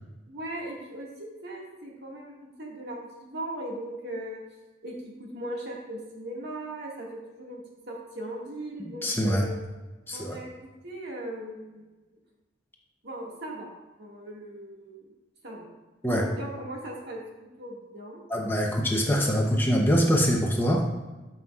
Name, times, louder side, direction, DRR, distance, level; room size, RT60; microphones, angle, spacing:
voice 1, 0.3-4.4 4.8-9.6 10.1-11.8 13.0-13.7 14.0-15.0 15.4-15.7 16.1-18.2, right 1 dB, 55° right, -2 dB, 1.8 m, -38 dB
voice 2, 9.0-9.4 10.1-10.4 16.0-16.3 18.3-20.8, equal, 10° left, 0 dB, 0.7 m, -24 dB
13.5 x 5.6 x 2.4 m, 1.1 s
head